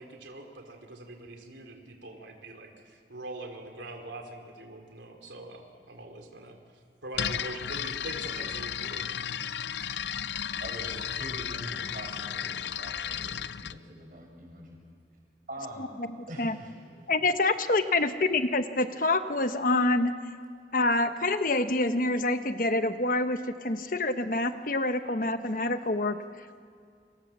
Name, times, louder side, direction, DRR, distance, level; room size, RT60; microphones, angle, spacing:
voice 1, 0.0-6.6 7.0-9.1, right 2 dB, 85° right, 3 dB, 3.4 m, -43 dB
sound 1, 7.1-13.8, left 8 dB, 75° left, 0.6 m, -34 dB
voice 2, 10.6-14.8 15.5-15.9 16.3-16.7, right 1 dB, 50° right, 0 dB, 7.0 m, -43 dB
voice 3, 15.8-16.1 16.4-16.6 17.1-20.1 20.7-26.6, left 2 dB, 50° left, 9 dB, 1.0 m, -27 dB
29.0 x 26.0 x 7.3 m, 2.1 s
head